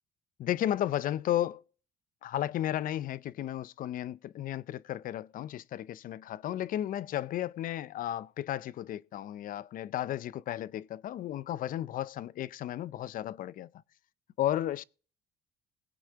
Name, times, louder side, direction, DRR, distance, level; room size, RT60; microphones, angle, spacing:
voice 1, 0.4-1.6 2.2-13.7 14.4-14.8, left 12 dB, 55° left, 0.5 m, -33 dB
21.0 x 8.3 x 2.8 m
cardioid pair, 110°, 17 cm